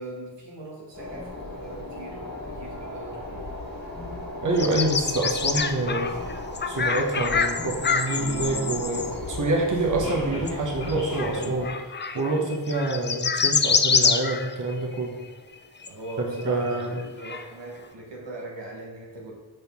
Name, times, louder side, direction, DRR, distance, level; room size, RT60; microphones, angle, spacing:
voice 1, 0.0-3.6 15.8-19.3, right 2 dB, 85° right, -2 dB, 1.3 m, -40 dB
sound 1, 0.9-11.7, left 1 dB, 55° left, 1.8 m, -35 dB
voice 2, 4.4-6.1 6.7-15.2 16.2-17.0, right 2 dB, 45° right, 0 dB, 1.1 m, -27 dB
sound 2, 4.6-9.1 10.5-10.6 10.9-15.0 15.5-15.6 15.8-17.4, left 5 dB, 25° left, 0.4 m, -26 dB
6.5 x 4.1 x 3.4 m, 1.3 s
cardioid pair, 50°, 42 cm